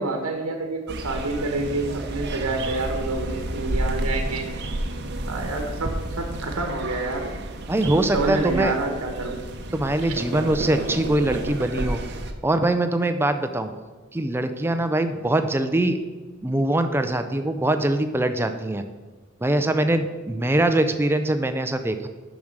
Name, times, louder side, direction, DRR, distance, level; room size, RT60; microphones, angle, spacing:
voice 1, 0.0-4.7 5.3-7.4 7.9-9.4 10.0-10.1, right 2 dB, 85° right, 4 dB, 1.1 m, -28 dB
sound 1, 0.9-12.3, right 1 dB, 50° right, 0.8 m, -31 dB
voice 2, 7.7-8.7 9.7-12.0 12.4-13.7 14.1-16.0 16.4-18.8 19.4-22.1, right 1 dB, 10° right, 8 dB, 0.4 m, -23 dB
7.0 x 6.1 x 6.5 m, 1.4 s
head